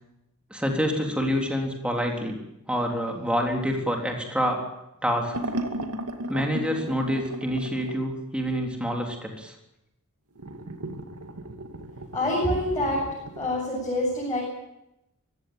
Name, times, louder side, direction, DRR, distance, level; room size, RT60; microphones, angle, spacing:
voice 1, 0.5-2.4 2.7-4.6 5.0-5.4 6.3-9.6, equal, 5° right, 1 dB, 3.6 m, -27 dB
sound 1, 5.3-8.0 10.4-13.5, right 1 dB, 85° right, 2.4 m, -35 dB
voice 2, 12.1-13.0 13.4-14.4, left 1 dB, 15° left, -5 dB, 8.0 m, -26 dB
24.0 x 16.0 x 9.1 m, 0.87 s
head